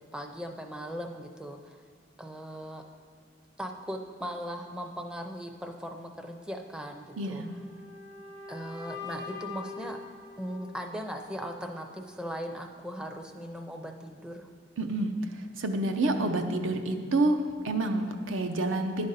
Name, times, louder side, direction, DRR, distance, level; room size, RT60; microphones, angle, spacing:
voice 1, 0.0-1.8 2.2-2.8 3.6-7.4 8.5-10.0 10.4-14.5, equal, 5° right, 4 dB, 0.4 m, -39 dB
sound 1, 7.1-11.1, left 4 dB, 70° right, 1.6 m, -43 dB
voice 2, 7.2-7.5 14.8-19.1, right 2 dB, 85° right, 6 dB, 0.7 m, -28 dB
11.0 x 5.2 x 4.1 m, 2.1 s
head